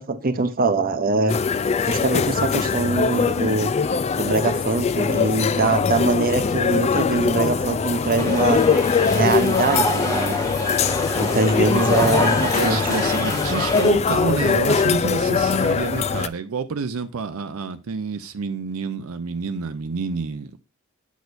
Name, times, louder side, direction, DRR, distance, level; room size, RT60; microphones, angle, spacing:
voice 1, 0.0-1.4 1.9-3.7 4.1-8.6 9.1-10.4 11.2-12.8, right 3 dB, 45° right, 0.8 m, -23 dB
sound 1, 1.3-16.3, left 5 dB, 30° left, 0.3 m, -22 dB
sound 2, 8.2-13.9, left 1 dB, 15° left, 1.4 m, -26 dB
voice 2, 12.5-20.6, right 5 dB, 80° right, 0.6 m, -28 dB
8.2 x 6.2 x 2.6 m
head